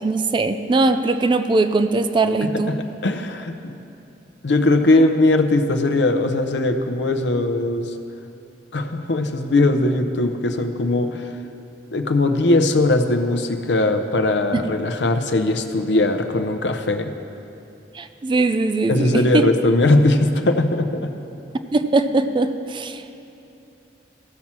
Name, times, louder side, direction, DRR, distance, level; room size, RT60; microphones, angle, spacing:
voice 1, 0.0-2.8 14.5-14.6 17.9-19.5 21.7-23.2, right 3 dB, 25° right, 9 dB, 0.3 m, -20 dB
voice 2, 2.4-3.8 4.4-7.9 8.7-11.3 11.9-17.1 18.9-21.1, left 2 dB, 75° left, 6 dB, 0.6 m, -20 dB
15.0 x 5.9 x 4.3 m, 2.9 s
head